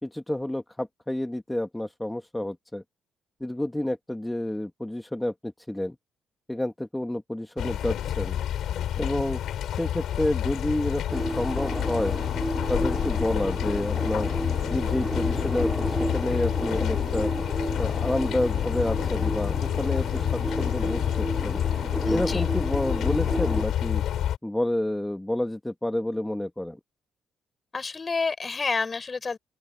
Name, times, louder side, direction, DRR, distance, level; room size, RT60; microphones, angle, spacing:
voice 1, 0.0-2.8 3.4-6.0 6.5-8.4 9.0-9.4 9.7-12.2 12.7-14.3 14.7-17.3 17.8-21.6 22.1-24.0 24.4-26.8, left 1 dB, 10° left, 2.0 m, -29 dB
sound 1, 7.6-24.4, left 11 dB, 75° left, 7.0 m, -28 dB
sound 2, 11.1-23.7, right 1 dB, 10° right, 2.9 m, -32 dB
voice 2, 22.0-22.4 27.7-29.4, left 4 dB, 30° left, 8.0 m, -29 dB
open air
cardioid pair, 90°, 0 cm